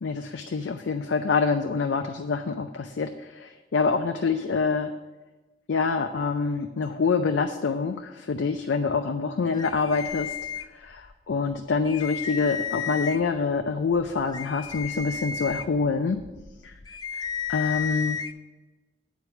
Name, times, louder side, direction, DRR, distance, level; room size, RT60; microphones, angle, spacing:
voice 1, 0.0-4.9 5.7-10.3 10.7-16.2 16.6-16.7 17.1-17.2 17.5-18.2, left 4 dB, 85° left, 6 dB, 0.5 m, -26 dB
sound 1, 9.5-11.1 11.5-11.6 11.9-13.4 13.9-18.3, left 7 dB, 20° left, 0.3 m, -33 dB
9.3 x 4.7 x 7.0 m, 1.2 s
head